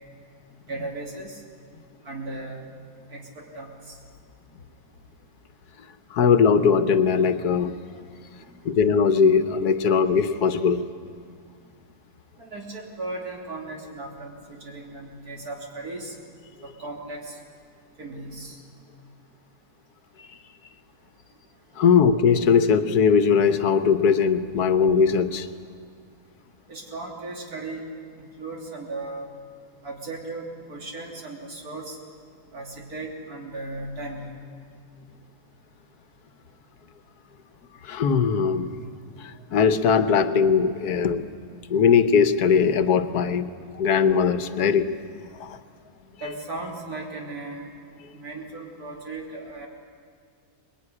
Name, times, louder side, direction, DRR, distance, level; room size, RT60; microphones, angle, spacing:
voice 1, 0.7-1.4 2.0-2.7 3.1-4.0 8.4-8.5 12.4-16.2 16.6-17.4 18.0-18.6 26.7-27.8 28.2-29.3 29.8-32.0 32.5-34.3 46.2-47.7 48.1-49.7, right 2 dB, 70° right, 0 dB, 3.6 m, -36 dB
voice 2, 6.1-7.7 8.6-10.8 21.8-25.5 37.8-38.7 39.2-41.2 41.7-43.5 43.7-44.9 45.3-45.6, left 6 dB, 80° left, 11 dB, 1.5 m, -20 dB
22.0 x 21.0 x 9.8 m, 2.2 s
omnidirectional pair, 1.7 m